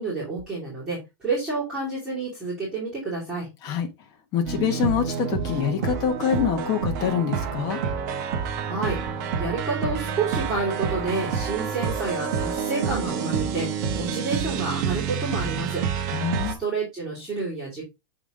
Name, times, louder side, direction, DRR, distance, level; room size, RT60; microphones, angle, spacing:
voice 1, 0.0-3.5 8.6-15.8 16.4-17.8, right 3 dB, 5° right, 2.7 m, -29 dB
voice 2, 4.3-7.8 16.1-16.6, left 8 dB, 30° left, 1.1 m, -25 dB
sound 1, 4.5-16.5, right 7 dB, 40° right, 1.0 m, -28 dB
7.1 x 3.6 x 3.7 m
supercardioid pair, 165°, 13 cm